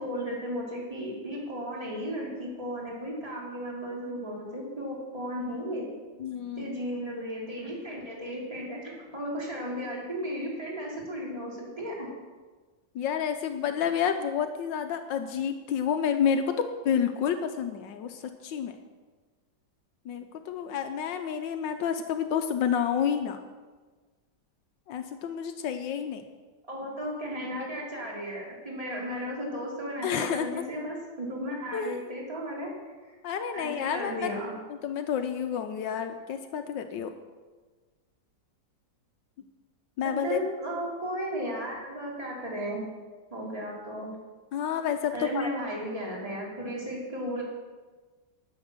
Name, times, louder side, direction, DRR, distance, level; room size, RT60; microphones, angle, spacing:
voice 1, 0.0-5.8 6.5-12.1 26.7-32.7 33.0-33.1 33.5-34.5 40.0-42.8 43.3-44.1 45.1-47.4, equal, 20° right, -3 dB, 2.9 m, -35 dB
voice 2, 6.2-6.7 12.9-16.4 16.8-18.8 20.0-23.4 24.9-26.2 30.0-30.6 31.7-32.2 33.2-34.3 34.7-37.1 40.0-40.4 44.5-45.5, left 8 dB, 80° left, 7 dB, 1.4 m, -29 dB
9.7 x 9.6 x 6.6 m, 1.4 s
omnidirectional pair, 2.0 m